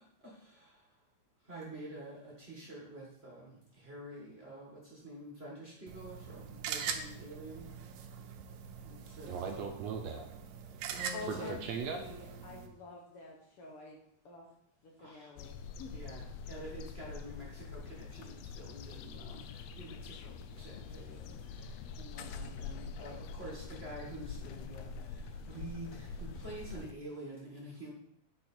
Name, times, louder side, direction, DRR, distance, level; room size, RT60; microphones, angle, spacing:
voice 1, 1.5-2.1 2.7-3.0 3.9-4.2 4.4-4.6 5.0-5.5 5.9-6.1 6.7-7.5 9.2-9.3 11.0-11.5 15.9-16.2 16.5-16.7 17.0-17.4 19.8-19.9 23.0-23.1 23.4-23.5 23.8-24.5 25.5-25.9 26.4-27.9, right 1 dB, 30° right, -4 dB, 1.2 m, -45 dB
sound 1, 5.9-12.7, right 7 dB, 90° right, 2.3 m, -43 dB
voice 2, 9.3-10.3 10.9-12.0, right 6 dB, 75° right, 4 dB, 1.7 m, -39 dB
voice 3, 11.1-14.0 14.2-14.4 14.8-15.6, left 4 dB, 60° left, -1 dB, 1.6 m, -47 dB
sound 2, 15.4-26.9, left 5 dB, 85° left, 1.4 m, -45 dB
9.1 x 4.8 x 4.4 m, 0.74 s
omnidirectional pair, 3.5 m